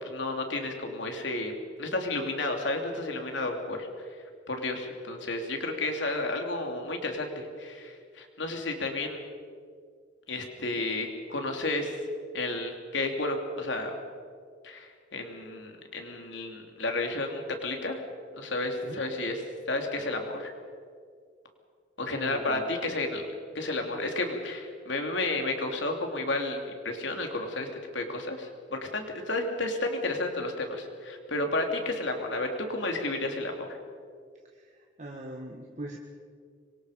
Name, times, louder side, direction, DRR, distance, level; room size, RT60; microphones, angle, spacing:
voice 1, 0.0-1.5 1.8-3.9 4.5-9.2 10.3-12.0 12.3-13.9 14.6-18.0 18.3-19.4 19.7-20.5 22.0-23.3 23.5-27.7 27.9-33.8, left 2 dB, 75° left, 3 dB, 3.1 m, -32 dB
voice 2, 22.1-22.7 34.5-34.7 35.0-36.0, right 1 dB, 40° right, 0 dB, 1.7 m, -40 dB
26.0 x 23.5 x 5.2 m, 2.1 s
head